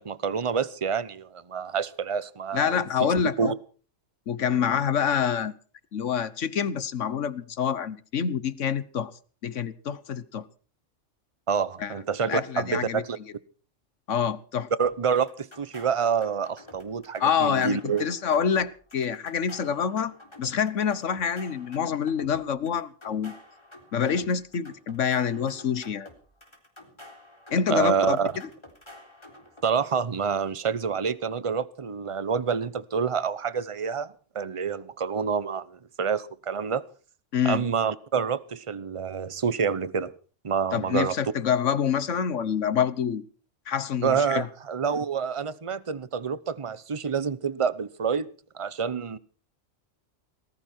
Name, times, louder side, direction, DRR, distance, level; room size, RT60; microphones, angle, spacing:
voice 1, 0.0-3.1 3.4-3.5 11.5-13.2 14.8-18.0 27.7-28.3 29.6-36.8 37.4-40.1 40.4-41.2 44.0-48.3 48.5-49.2, right 6 dB, 30° right, 0.9 m, -27 dB
voice 2, 2.5-3.5 4.3-5.5 5.9-9.1 9.4-10.5 11.8-11.9 12.3-13.0 14.1-14.7 17.2-23.3 23.9-26.1 27.5-28.2 37.3-37.6 40.7-43.2 43.7-44.5, left 7 dB, 75° left, 1.4 m, -26 dB
sound 1, 14.8-29.7, left 1 dB, 20° left, 3.8 m, -50 dB
20.0 x 16.0 x 4.5 m
omnidirectional pair, 1.3 m